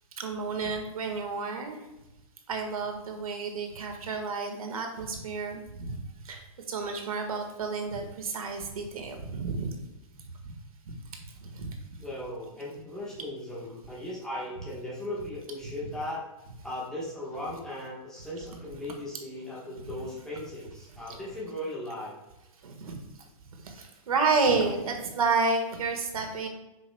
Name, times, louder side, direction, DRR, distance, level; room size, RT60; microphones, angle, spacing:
voice 1, 0.2-1.8 2.5-5.9 6.2-6.4 6.7-9.8 10.4-10.5 11.5-11.7 22.6-22.9 23.6-26.5, right 4 dB, 85° right, 3 dB, 1.6 m, -30 dB
voice 2, 12.0-16.3 16.6-22.1, left 1 dB, 5° left, -7 dB, 1.2 m, -37 dB
8.0 x 5.9 x 2.2 m, 1.0 s
hypercardioid pair, 170°, 18 cm